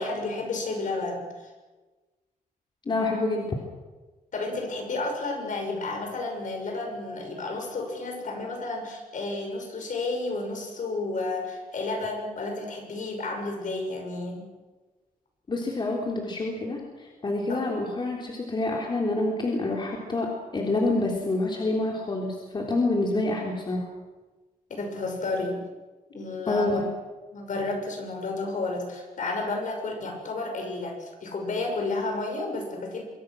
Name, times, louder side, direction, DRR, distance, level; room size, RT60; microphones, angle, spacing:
voice 1, 0.0-1.5 4.3-14.4 17.5-17.6 24.7-25.6 26.1-26.8 27.3-33.0, left 3 dB, 55° left, 3 dB, 6.6 m, -31 dB
voice 2, 2.9-3.6 15.5-23.9 26.5-26.8, left 2 dB, 30° left, -1 dB, 3.6 m, -27 dB
26.0 x 24.0 x 6.3 m, 1.2 s
wide cardioid pair, 165°, 15 cm